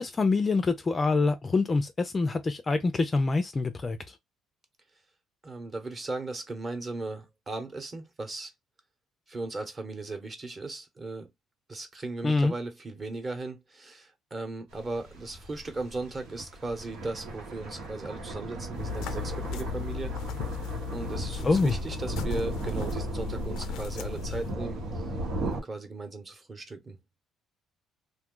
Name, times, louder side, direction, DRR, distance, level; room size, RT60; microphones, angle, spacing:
voice 1, 0.0-4.0 12.2-12.5 21.4-21.7, left 3 dB, 25° left, 0.4 m, -25 dB
voice 2, 5.4-8.5 9.3-11.3 11.7-20.1 20.9-25.0 25.4-27.0, right 2 dB, 25° right, 0.9 m, -37 dB
sound 1, 14.7-25.6, right 1 dB, 90° right, 1.2 m, -36 dB
sound 2, 18.7-24.5, left 7 dB, 85° left, 0.4 m, -37 dB
2.5 x 2.2 x 3.7 m
cardioid pair, 120°, 0 cm